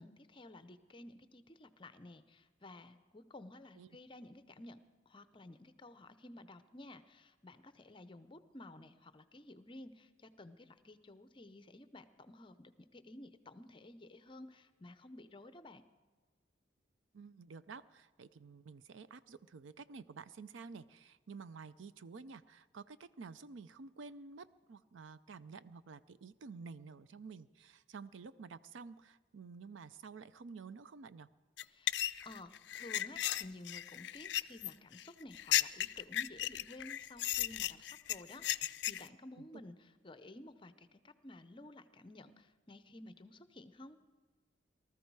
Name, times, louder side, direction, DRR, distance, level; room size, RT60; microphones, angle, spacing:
voice 1, 0.0-15.8 31.7-44.0, left 1 dB, 25° left, 12 dB, 0.6 m, -53 dB
voice 2, 17.1-31.3 39.4-39.5, right 4 dB, 85° right, 15 dB, 0.5 m, -51 dB
sound 1, 31.6-39.1, left 13 dB, 65° left, 0.4 m, -35 dB
19.0 x 13.5 x 4.7 m, 1.4 s
head